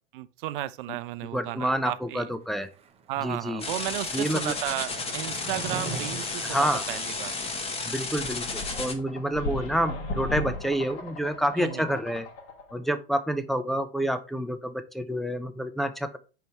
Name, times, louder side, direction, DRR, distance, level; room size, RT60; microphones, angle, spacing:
voice 1, 0.1-2.3 3.1-7.3 11.6-11.9, right 14 dB, 55° right, 0.6 m, -34 dB
voice 2, 1.3-2.7 3.2-3.6 4.1-4.6 6.5-6.8 7.8-12.3 12.7-16.2, equal, ahead, 0.4 m, -28 dB
Skateboard, 2.5-7.9, right 3 dB, 20° right, 0.8 m, -42 dB
sound 1, 3.6-8.9, left 3 dB, 20° left, 1.1 m, -33 dB
sound 2, 8.2-12.7, left 2 dB, 45° left, 1.4 m, -36 dB
5.2 x 4.7 x 4.4 m
hypercardioid pair, 105°, 31 cm